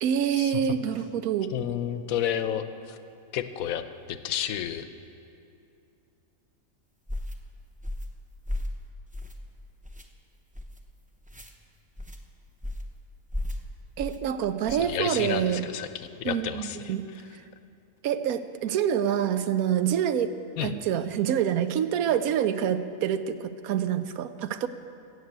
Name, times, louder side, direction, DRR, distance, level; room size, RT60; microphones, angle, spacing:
voice 1, 0.0-1.5 14.0-15.6 16.2-17.1 18.0-20.3 20.6-24.7, right 9 dB, 85° right, 11 dB, 1.1 m, -26 dB
voice 2, 1.5-3.0 3.3-4.9 14.7-16.9 20.6-20.7, left 10 dB, 80° left, 11 dB, 1.1 m, -31 dB
sound 1, 7.1-7.4 7.8-8.1 8.5-8.8 9.1-9.5 9.8-10.1 10.5-10.8 11.3-11.5 12.0-12.2 12.6-12.9 13.3-13.6 14.0-14.2 14.6-14.9, left 1 dB, 10° right, 0.4 m, -34 dB
16.0 x 6.6 x 8.0 m, 2.6 s
omnidirectional pair, 1.5 m